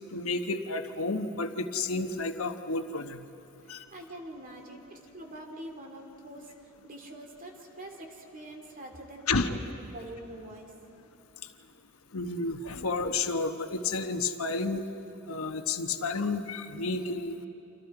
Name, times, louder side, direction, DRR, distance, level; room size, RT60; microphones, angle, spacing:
voice 1, 0.1-3.2 3.7-3.8 9.3-9.6 12.1-14.9 15.3-17.5, left 3 dB, 85° left, 7 dB, 1.1 m, -31 dB
voice 2, 3.7-10.7, right 1 dB, 40° right, 2 dB, 2.7 m, -45 dB
29.5 x 26.5 x 4.9 m, 3.0 s
head